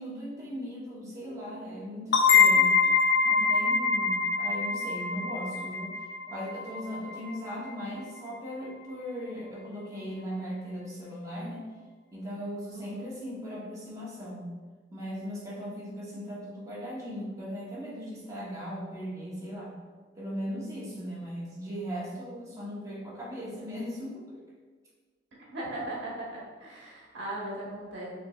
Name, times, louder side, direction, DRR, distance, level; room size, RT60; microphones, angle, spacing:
voice 1, 0.0-2.8 3.2-5.9 6.3-11.7 12.1-14.5 14.9-19.7 20.1-24.4, equal, 15° right, -6 dB, 1.0 m, -38 dB
sound 1, 2.1-7.6, left 5 dB, 70° left, 0.6 m, -24 dB
voice 2, 25.5-28.1, right 1 dB, 70° right, -5 dB, 1.2 m, -38 dB
6.4 x 3.0 x 2.4 m, 1.4 s
head